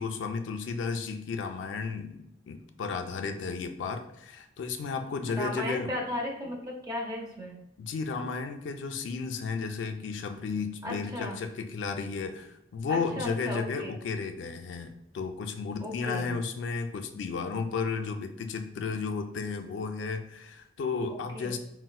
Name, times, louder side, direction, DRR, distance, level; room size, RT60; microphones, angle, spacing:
voice 1, 0.0-5.9 7.8-21.6, left 5 dB, 75° left, 7 dB, 0.3 m, -33 dB
voice 2, 5.3-7.6 10.8-11.4 12.9-13.9 15.8-16.3 21.1-21.6, left 1 dB, 20° right, -1 dB, 0.6 m, -35 dB
4.1 x 2.1 x 2.3 m, 0.82 s
head